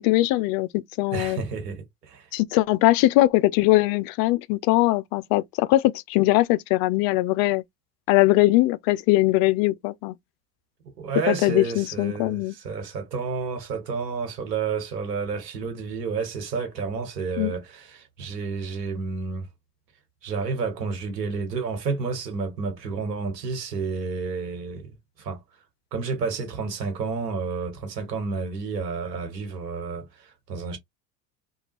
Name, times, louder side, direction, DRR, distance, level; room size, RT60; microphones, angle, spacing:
voice 1, 0.0-1.4 2.3-7.6 8.1-10.1 11.3-12.5 17.4-17.5, left 18 dB, 50° left, 0.5 m, -21 dB
voice 2, 1.1-2.3 10.8-19.5 20.2-25.4 25.9-30.8, right 5 dB, 90° right, 1.3 m, -30 dB
2.8 x 2.3 x 2.9 m
hypercardioid pair, 85°, 47 cm